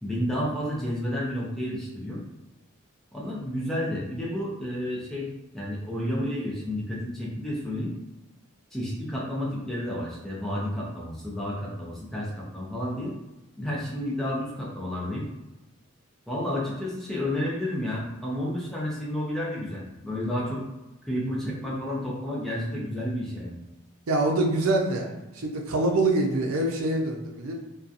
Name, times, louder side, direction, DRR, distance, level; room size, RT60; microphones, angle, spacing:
voice 1, 0.0-2.2 3.1-5.3 5.5-7.9 8.7-13.1 13.6-15.3 16.3-20.6 21.0-23.6, left 1 dB, ahead, -5 dB, 0.5 m, -31 dB
voice 2, 24.1-27.5, right 2 dB, 85° right, 1 dB, 0.5 m, -25 dB
2.7 x 2.2 x 2.5 m, 0.98 s
head